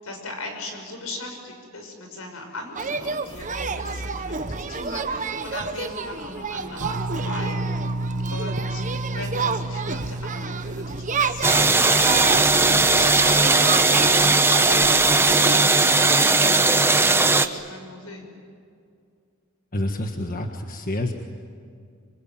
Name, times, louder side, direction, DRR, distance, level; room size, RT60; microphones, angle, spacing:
voice 1, 0.0-7.9 8.3-8.8 9.1-18.3, left 2 dB, 80° left, 4 dB, 6.1 m, -39 dB
sound 1, 2.7-15.6, right 5 dB, 35° right, 1.2 m, -30 dB
sound 2, 6.8-13.1, right 2 dB, 75° right, 1.4 m, -31 dB
sound 3, 11.4-17.5, right 3 dB, 10° right, 1.0 m, -18 dB
voice 2, 19.7-21.1, left 1 dB, 40° left, 4 dB, 1.5 m, -28 dB
25.5 x 25.0 x 9.2 m, 2.2 s
head